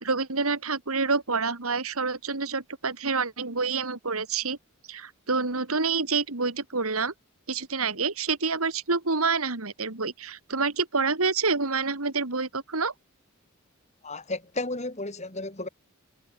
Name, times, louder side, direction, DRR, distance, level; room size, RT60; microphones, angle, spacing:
voice 1, 0.0-4.6 4.9-7.1 7.5-12.9, right 4 dB, 80° right, 2.5 m, -27 dB
voice 2, 14.0-15.7, left 2 dB, 30° left, 4.7 m, -33 dB
head